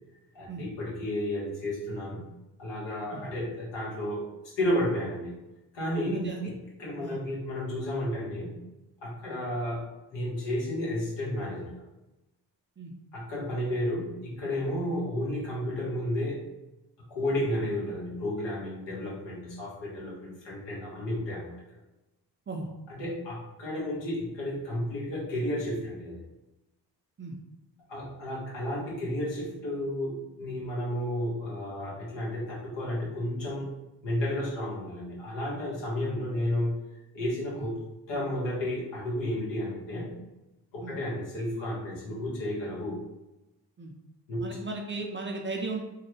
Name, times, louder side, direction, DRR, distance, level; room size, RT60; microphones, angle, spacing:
voice 1, 0.3-2.2 2.6-4.2 4.6-5.3 5.7-6.5 6.8-8.6 9.0-11.7 13.1-16.4 17.1-21.5 22.9-26.2 27.9-33.7 34.0-36.7 37.1-37.8 38.1-40.2 40.7-43.0 44.3-44.4, left 1 dB, 70° left, -5 dB, 1.4 m, -32 dB
voice 2, 6.1-6.5 7.0-7.2 9.3-9.4 12.8-12.9 17.4-17.5 22.5-22.7 27.2-27.4 37.5-37.7 40.8-40.9 43.8-43.9 44.4-45.8, right 3 dB, 25° right, 2 dB, 0.5 m, -36 dB
3.1 x 2.3 x 2.9 m, 0.98 s
supercardioid pair, 55°, 47 cm